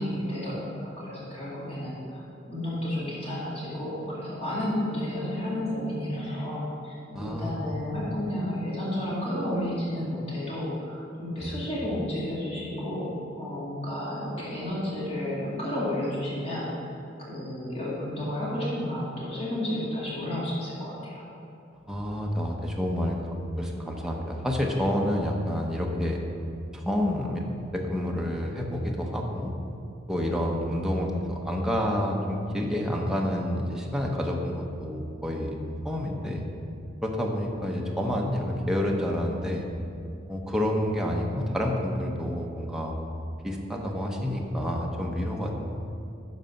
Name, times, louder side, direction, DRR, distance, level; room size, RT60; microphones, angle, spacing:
voice 1, 0.0-6.9 7.2-16.7 17.2-21.2, left 1 dB, 35° left, -8 dB, 2.1 m, -31 dB
voice 2, 7.1-7.7 11.4-11.6 21.9-23.2 23.6-26.2 26.7-27.4 27.7-29.5 30.1-35.6 35.8-36.4 37.0-39.7 40.3-42.9 43.4-45.5, left 1 dB, 5° right, -1 dB, 0.9 m, -28 dB
11.5 x 4.1 x 5.3 m, 2.5 s
head